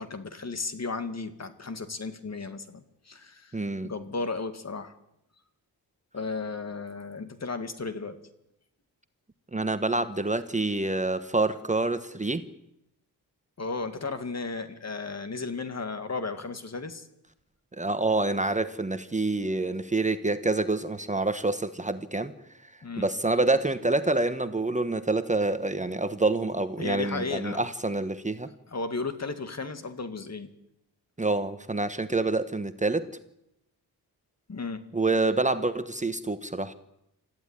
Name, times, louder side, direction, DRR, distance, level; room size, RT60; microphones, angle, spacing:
voice 1, 0.0-3.6 3.8-4.9 6.1-8.2 13.6-17.1 22.8-23.1 26.8-27.7 28.7-30.5 34.5-34.8, left 4 dB, 40° left, 9 dB, 2.3 m, -34 dB
voice 2, 3.5-3.9 9.5-12.4 17.8-22.3 23.0-28.5 31.2-33.1 34.9-36.7, right 2 dB, 20° right, 10 dB, 1.1 m, -27 dB
26.5 x 14.5 x 9.9 m, 0.83 s
wide cardioid pair, 105°, 39 cm